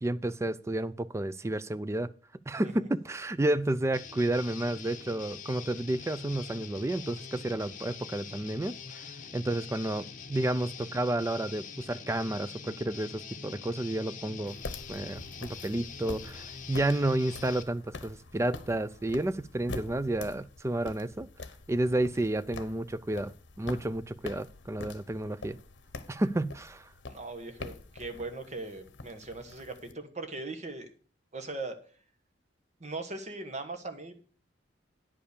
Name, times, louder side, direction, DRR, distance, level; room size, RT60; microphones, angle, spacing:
voice 1, 0.0-2.1 2.5-9.0 9.3-14.5 14.9-21.3 21.7-23.3 23.6-25.6 26.1-26.9, right 1 dB, 15° right, 0.4 m, -31 dB
Guitar, 3.9-17.6, left 6 dB, 45° left, 1.0 m, -44 dB
sound 1, 14.5-29.9, left 3 dB, 70° left, 0.9 m, -46 dB
voice 2, 27.1-30.9 31.3-31.8 32.8-34.2, right 3 dB, 40° right, 1.2 m, -39 dB
9.8 x 5.5 x 6.6 m
head